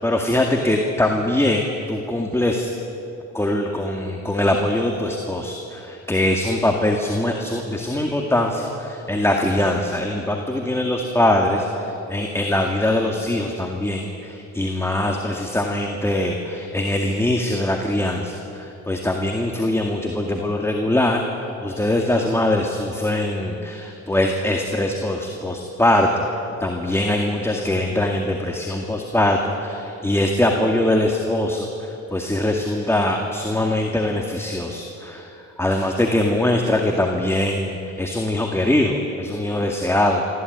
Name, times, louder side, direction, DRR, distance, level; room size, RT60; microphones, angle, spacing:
voice 1, 0.0-2.7 3.3-21.2 21.6-26.3 26.6-40.2, left 1 dB, 10° left, 2 dB, 2.1 m, -22 dB
24.5 x 14.5 x 9.5 m, 2.8 s
cardioid pair, 90°, 30 cm